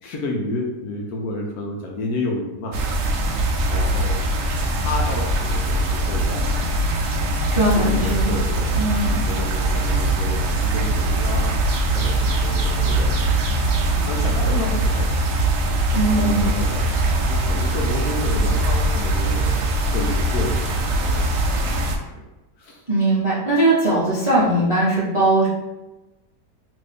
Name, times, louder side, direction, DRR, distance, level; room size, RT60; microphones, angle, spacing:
voice 1, 0.0-2.8 3.6-6.5 7.7-8.9 9.2-11.6 11.9-13.2 14.0-15.5 15.9-19.5 19.9-21.2 21.5-22.2 22.6-22.8, left 2 dB, 70° left, -1 dB, 1.0 m, -31 dB
sound 1, 2.7-22.0, right 1 dB, 70° right, 0.8 m, -21 dB
voice 2, 7.5-8.4 8.8-9.2 15.9-16.5 22.9-25.5, right 2 dB, 35° right, -9 dB, 0.5 m, -19 dB
3.0 x 2.5 x 3.4 m, 1.0 s
omnidirectional pair, 1.9 m